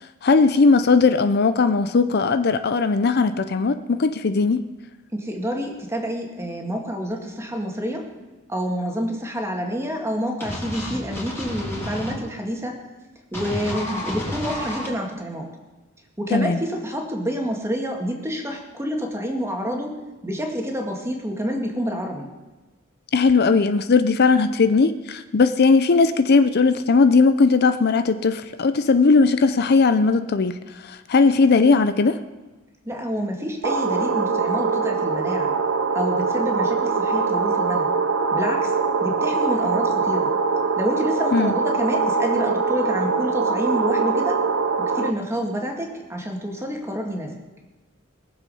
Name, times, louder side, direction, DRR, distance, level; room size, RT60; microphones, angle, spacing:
voice 1, 0.2-4.7 16.3-16.6 23.1-30.6 30.8-32.2 41.3-41.5, left 4 dB, 50° left, 10 dB, 0.5 m, -18 dB
voice 2, 5.1-8.1 8.5-12.8 13.3-15.5 16.2-19.9 20.2-22.3 32.9-35.5 35.9-37.9 38.3-38.7 39.0-40.3 40.8-44.4 44.9-47.4, equal, 15° right, 1 dB, 2.0 m, -28 dB
sound 1, 10.4-12.1 13.3-14.9, left 1 dB, 10° left, 2.9 m, -30 dB
sound 2, 33.6-45.1, right 4 dB, 70° right, 0.8 m, -22 dB
21.5 x 7.5 x 5.5 m, 1.2 s
head